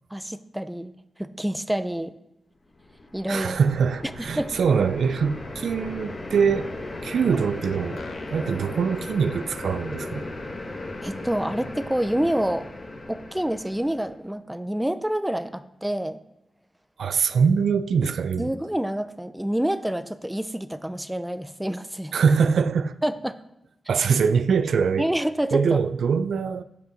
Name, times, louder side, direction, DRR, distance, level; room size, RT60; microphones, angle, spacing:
voice 1, 0.1-0.9 1.2-2.1 3.1-3.5 4.2-4.5 11.0-12.7 13.1-16.2 18.4-22.1 23.0-23.4 25.0-25.8, right 1 dB, 5° right, 0.4 m, -27 dB
sound 1, 2.7-14.1, left 2 dB, 35° left, 1.2 m, -37 dB
voice 2, 3.3-6.7 7.0-8.0 8.3-10.3 17.0-18.5 22.1-22.9 23.9-25.1 25.5-26.6, right 6 dB, 80° right, 0.4 m, -23 dB
sound 2, 8.0-9.9, left 4 dB, 75° left, 0.8 m, -47 dB
8.4 x 5.5 x 5.1 m
wide cardioid pair, 135°, 0 cm